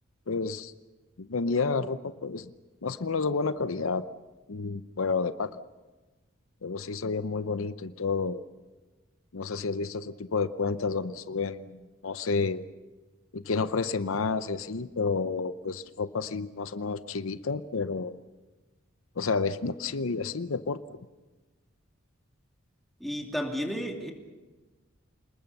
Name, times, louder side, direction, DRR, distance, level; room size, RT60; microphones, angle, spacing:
voice 1, 0.3-0.7 1.2-2.5 2.8-4.0 4.5-5.6 6.6-8.4 9.3-12.6 13.3-18.2 19.2-21.0, left 4 dB, 85° left, 13 dB, 0.8 m, -30 dB
voice 2, 23.0-24.1, equal, ahead, 1 dB, 2.8 m, -32 dB
28.0 x 20.0 x 6.8 m, 1.2 s
head